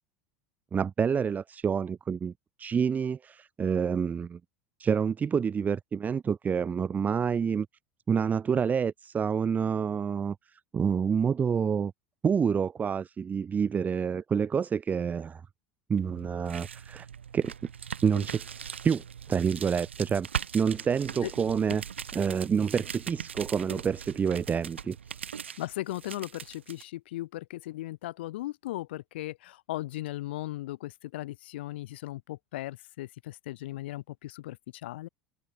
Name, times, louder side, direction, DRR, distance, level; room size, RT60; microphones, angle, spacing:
voice 1, 0.7-2.3 2.6-4.4 4.8-7.7 8.1-10.4 10.7-11.9 12.2-15.4 15.9-17.1 17.3-17.5 18.0-18.4 18.8-19.0 19.3-20.3 20.5-21.8 22.1-25.2, right 6 dB, 25° right, 2.1 m, -28 dB
sound 1, 16.0-26.8, right 7 dB, 80° right, 6.2 m, -40 dB
voice 2, 25.6-35.1, left 16 dB, 65° left, 2.0 m, -37 dB
figure-of-eight pair, 75°, 6 cm